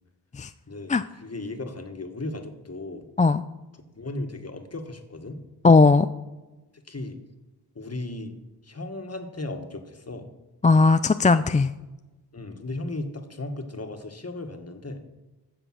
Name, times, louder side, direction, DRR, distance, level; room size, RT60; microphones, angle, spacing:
voice 1, 0.7-3.1 3.9-5.4 6.9-7.2 7.7-8.3 8.6-10.3 12.3-15.0, left 2 dB, 35° left, 5 dB, 1.7 m, -36 dB
voice 2, 5.6-6.1 10.6-11.7, left 4 dB, 20° left, 11 dB, 0.3 m, -17 dB
15.0 x 5.2 x 6.2 m, 1.1 s
cardioid pair, 50°, 44 cm